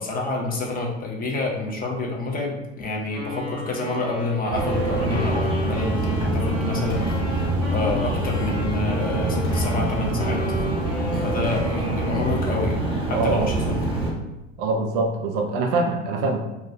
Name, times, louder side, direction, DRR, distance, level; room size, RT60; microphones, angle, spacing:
voice 1, 0.0-10.4 11.2-12.8 13.1-14.0, left 3 dB, 25° left, -1 dB, 0.5 m, -28 dB
Wind instrument woodwind instrument, 3.1-12.7, right 2 dB, 75° left, 1.0 m, -33 dB
sound 1, 4.5-14.1, right 1 dB, 15° right, 0.8 m, -25 dB
sound 2, 6.9-7.2 7.9-8.5 9.4-10.2 10.5-10.7 11.1-11.7, equal, 55° left, 1.1 m, -36 dB
voice 2, 13.1-13.5 14.6-16.4, right 3 dB, 65° right, 3 dB, 0.5 m, -23 dB
2.2 x 2.2 x 2.6 m, 0.98 s
hypercardioid pair, 75°, 36 cm